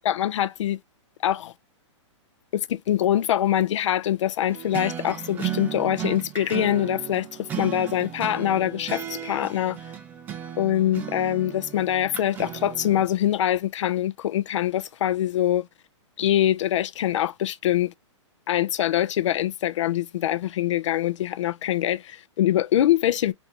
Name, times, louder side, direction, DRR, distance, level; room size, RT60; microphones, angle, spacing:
voice 1, 0.0-0.8 1.2-1.5 2.5-9.8 10.6-15.7 16.2-17.9 18.5-23.3, left 12 dB, 70° left, 0.4 m, -24 dB
sound 1, 4.5-13.1, right 10 dB, 10° right, 0.3 m, -35 dB
2.8 x 2.6 x 3.5 m
hypercardioid pair, 145°, 16 cm